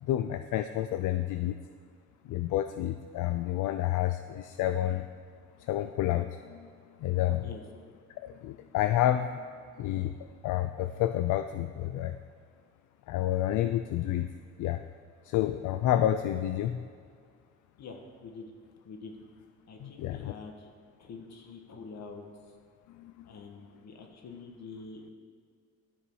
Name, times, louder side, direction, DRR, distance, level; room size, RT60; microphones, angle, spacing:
voice 1, 0.0-1.6 2.2-5.1 5.6-6.7 7.0-7.4 8.1-9.5 9.8-10.1 10.4-12.2 13.1-14.3 14.6-14.8 15.2-16.9 19.8-20.3 22.9-23.3, left 12 dB, 80° left, 9 dB, 0.5 m, -29 dB
voice 2, 17.8-18.5 18.8-19.1 19.7-20.7 21.0-22.6 23.2-25.1, left 4 dB, 60° left, 3 dB, 1.5 m, -46 dB
12.5 x 6.9 x 4.7 m, 2.1 s
cardioid pair, 90°, 30 cm